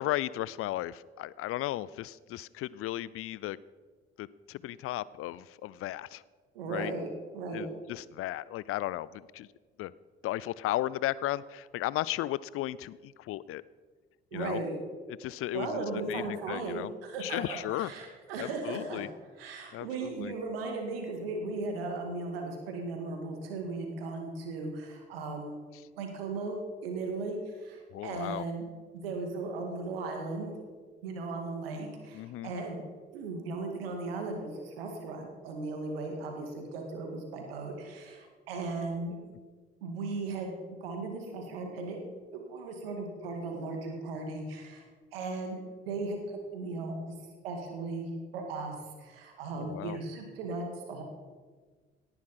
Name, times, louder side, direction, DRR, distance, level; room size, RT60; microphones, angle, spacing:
voice 1, 0.0-3.6 4.2-6.2 6.7-6.9 7.5-9.5 9.8-9.9 10.2-13.6 14.3-14.6 15.1-16.9 17.2-17.9 18.4-19.1 19.7-20.3 25.7-25.8 27.9-28.4 32.1-32.5 49.6-50.0, left 15 dB, 50° left, 20 dB, 0.5 m, -35 dB
voice 2, 6.5-7.7 14.3-14.8 15.5-19.0 19.4-25.5 26.0-28.7 28.9-30.5 31.0-32.8 33.1-39.2 39.8-42.0 42.3-44.8 45.1-45.6 45.9-47.1 47.4-51.0, right 3 dB, 75° right, 3 dB, 2.0 m, -37 dB
17.5 x 10.5 x 4.3 m, 1.4 s
figure-of-eight pair, 45°, 30 cm